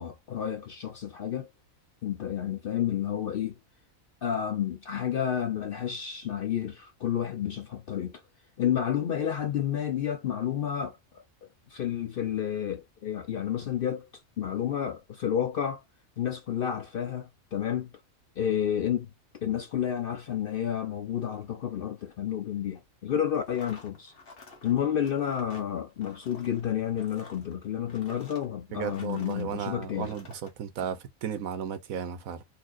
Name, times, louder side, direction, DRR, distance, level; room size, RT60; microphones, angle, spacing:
voice 1, 0.0-1.5 2.0-3.6 4.2-8.2 8.6-11.2 11.7-14.1 14.4-15.8 16.2-17.9 18.4-19.1 19.4-24.1 24.6-30.1, left 9 dB, 65° left, 0.5 m, -30 dB
sound 1, 23.4-29.5 29.9-30.5, left 3 dB, 45° left, 1.3 m, -50 dB
voice 2, 28.7-32.4, right 8 dB, 85° right, 1.2 m, -34 dB
4.1 x 2.7 x 2.5 m
omnidirectional pair, 1.4 m